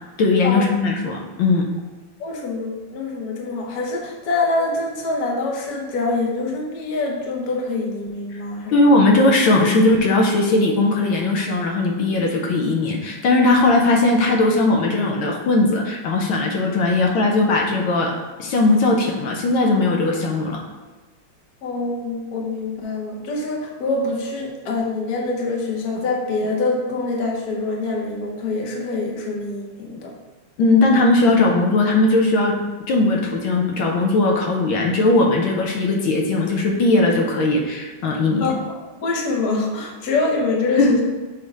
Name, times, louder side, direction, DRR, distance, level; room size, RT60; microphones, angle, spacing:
voice 1, 0.2-1.7 8.3-8.4 8.7-18.1 18.4-20.6 30.6-32.6 32.9-38.5 40.7-40.9, left 2 dB, 80° left, 0 dB, 1.6 m, -18 dB
voice 2, 2.2-8.7 21.6-30.1 38.4-41.0, left 3 dB, 55° left, 0 dB, 1.3 m, -25 dB
6.6 x 3.6 x 4.7 m, 1.2 s
omnidirectional pair, 2.2 m